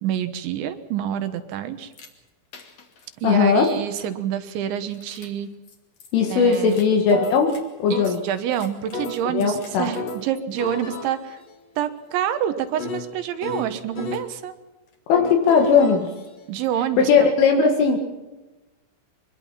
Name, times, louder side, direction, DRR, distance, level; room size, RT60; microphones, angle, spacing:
voice 1, 0.0-1.9 3.2-5.5 6.3-6.8 7.9-11.4 11.8-14.5 16.5-17.3, right 10 dB, 75° right, 10 dB, 3.4 m, -27 dB
sound 1, 1.9-2.1 2.5-3.0 3.6-3.7 4.9-5.3 5.7-5.8 6.0-6.1 6.5-7.6 7.9-10.3 10.6-14.3 15.1-16.9, left 3 dB, 40° left, 2.8 m, -35 dB
voice 2, 3.2-3.7 6.1-8.2 9.3-9.9 15.1-16.1 17.1-18.0, left 5 dB, 75° left, 2 dB, 4.5 m, -18 dB
24.5 x 21.0 x 5.8 m, 1.1 s
omnidirectional pair, 5.7 m